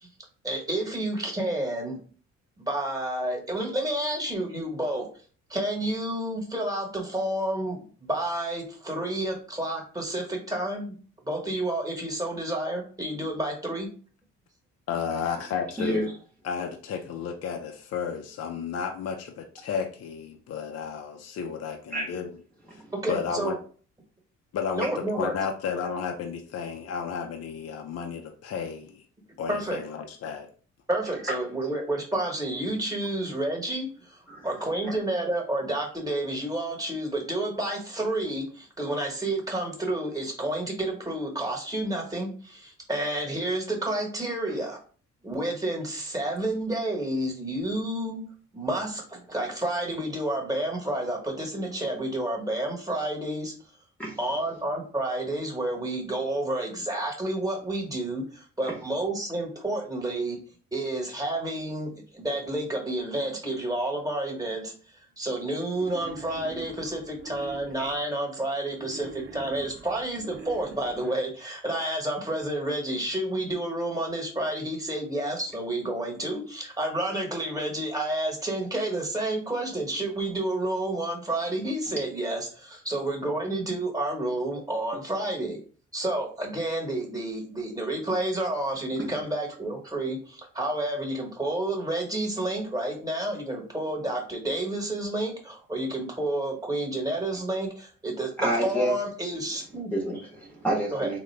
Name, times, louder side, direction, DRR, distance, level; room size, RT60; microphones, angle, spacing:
voice 1, 0.4-2.0 2.6-5.0 5.5-10.9 11.2-13.9 23.0-23.6 24.7-25.3 29.5-29.8 30.9-44.8 45.2-48.2 48.5-53.5 54.2-60.4 60.7-64.7 65.2-85.6 85.9-99.9 100.9-101.1, right 1 dB, 10° right, 1.2 m, -30 dB
voice 2, 14.9-16.1 16.4-22.3 23.1-23.6 24.5-29.0 29.4-30.5, left 6 dB, 55° left, 0.6 m, -32 dB
voice 3, 15.8-16.1 21.9-22.1 22.7-22.9 24.8-24.9 34.3-34.5 44.5-44.6 54.0-54.2 58.6-58.7 81.9-82.0 89.0-89.2 98.4-99.0 99.9-101.2, right 1 dB, 5° left, 0.9 m, -29 dB
Wild animals, 65.7-68.2 68.7-71.2, right 3 dB, 40° right, 0.7 m, -44 dB
3.7 x 2.2 x 3.2 m
cardioid pair, 90°, 30 cm